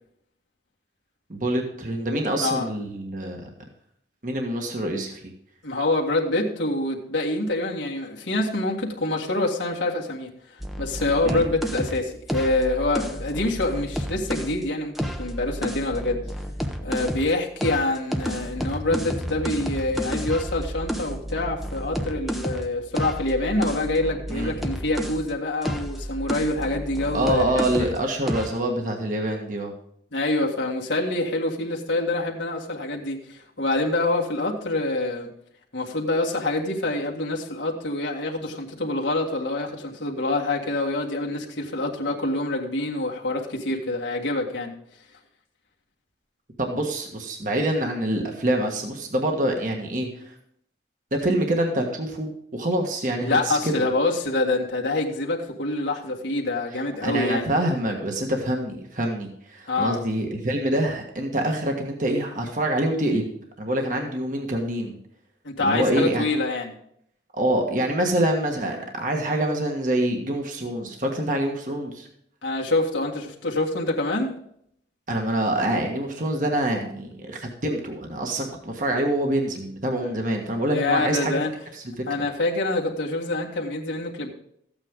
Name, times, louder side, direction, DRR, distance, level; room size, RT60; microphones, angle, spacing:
voice 1, 1.3-3.4 4.2-5.3 11.2-11.4 24.3-24.5 27.1-29.7 46.6-50.3 51.1-53.7 57.0-63.2 63.6-65.0 65.6-66.2 67.3-72.1 75.1-81.4 81.8-82.0, right 1 dB, 45° right, 2 dB, 1.5 m, -26 dB
voice 2, 5.6-10.3 10.8-16.2 16.8-27.9 30.1-35.3 35.7-44.7 53.2-57.5 59.7-60.0 65.4-66.8 72.4-74.3 80.0-80.1 80.7-81.5 82.1-84.3, left 2 dB, 80° left, -2 dB, 1.9 m, -26 dB
sound 1, 10.6-14.6 15.0-17.3 17.6-25.3 25.6-28.0 28.3-28.6, equal, ahead, 0.8 m, -31 dB
14.0 x 8.8 x 3.7 m, 0.69 s
head